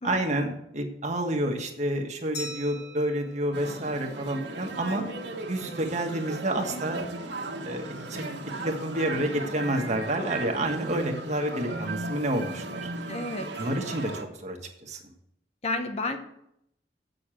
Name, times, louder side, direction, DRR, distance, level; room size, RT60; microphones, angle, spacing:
voice 1, 0.0-5.0 5.5-7.1 7.6-8.2 8.6-12.9 13.6-15.0, right 1 dB, 45° right, 3 dB, 1.5 m, -29 dB
Glass, 2.3-4.8, left 1 dB, 80° left, 4.0 m, -43 dB
sound 1, 3.5-14.2, right 2 dB, 85° right, 1.6 m, -36 dB
voice 2, 13.1-13.7 15.6-16.2, left 2 dB, 40° left, 6 dB, 1.0 m, -32 dB
8.4 x 6.7 x 7.6 m, 0.75 s
head